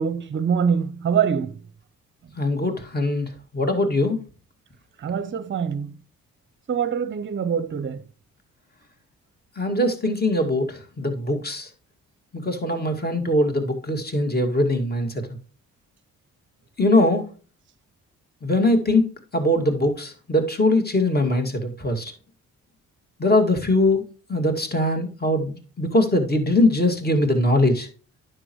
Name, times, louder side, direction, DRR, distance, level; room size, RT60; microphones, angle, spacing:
voice 1, 0.0-1.6 5.0-5.9 6.7-8.0, right 7 dB, 35° right, 0.7 m, -24 dB
voice 2, 2.4-4.2 9.6-11.7 12.3-15.1 16.8-17.3 18.4-19.1 19.3-22.1 23.2-24.0 24.3-27.9, left 1 dB, 30° left, 2.3 m, -21 dB
9.8 x 6.8 x 3.1 m
supercardioid pair, 55°, 33 cm